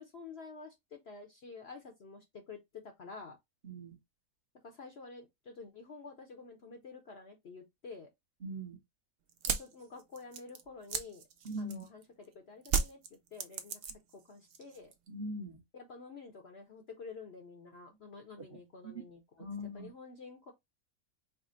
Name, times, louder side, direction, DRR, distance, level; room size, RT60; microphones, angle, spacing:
voice 1, 0.0-3.4 4.6-8.1 9.5-11.2 11.6-13.8 14.1-14.9 15.7-19.5 19.7-20.5, left 4 dB, 50° left, 0.8 m, -49 dB
voice 2, 3.6-4.0 8.4-8.8 11.4-11.9 15.1-15.6 18.8-18.9 19.4-19.9, equal, 45° right, 0.9 m, -41 dB
sound 1, 9.3-12.0 12.6-14.2 14.5-15.1, right 6 dB, 80° right, 0.5 m, -35 dB
4.9 x 2.1 x 3.7 m
omnidirectional pair, 1.7 m